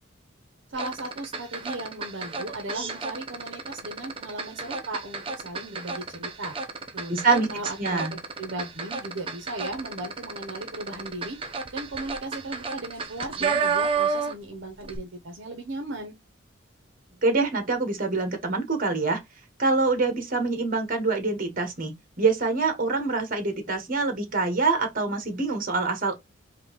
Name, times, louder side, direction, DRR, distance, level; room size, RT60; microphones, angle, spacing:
sound 1, 0.7-14.5 14.8-15.0, right 5 dB, 30° right, 0.7 m, -31 dB
voice 1, 0.7-6.5 6.9-8.0 8.4-11.4 11.7-16.1, right 2 dB, 65° right, 0.7 m, -36 dB
voice 2, 7.1-7.5 7.8-8.1 17.2-19.2 19.6-26.2, right 3 dB, 45° right, 1.2 m, -25 dB
3.8 x 2.7 x 3.9 m
head